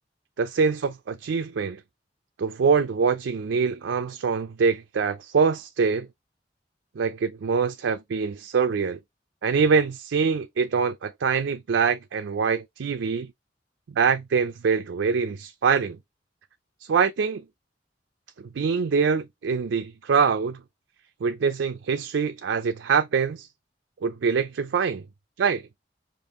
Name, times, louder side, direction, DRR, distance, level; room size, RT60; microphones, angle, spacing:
voice 1, 0.4-1.8 2.4-6.1 7.0-9.0 9.4-13.3 13.9-16.0 16.9-17.4 18.5-20.6 21.2-23.5 24.0-25.0 25.4-25.7, right 5 dB, 85° right, 0.4 m, -24 dB
5.2 x 2.5 x 3.5 m
head